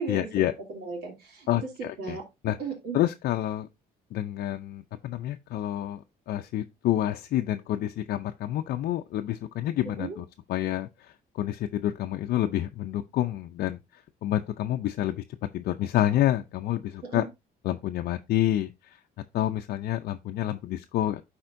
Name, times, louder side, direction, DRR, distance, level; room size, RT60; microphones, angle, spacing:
voice 1, 0.1-0.5 1.5-2.2 2.4-2.6 2.9-3.7 4.1-13.8 14.2-15.2 15.5-17.2 17.6-19.0 19.3-21.2, left 13 dB, 65° left, 0.5 m, -28 dB
voice 2, 0.7-1.7 2.0-2.2 2.6-3.0 10.0-10.2 17.1-17.2, right 5 dB, 75° right, 2.8 m, -35 dB
12.0 x 4.3 x 2.6 m
cardioid pair, 110°, 17 cm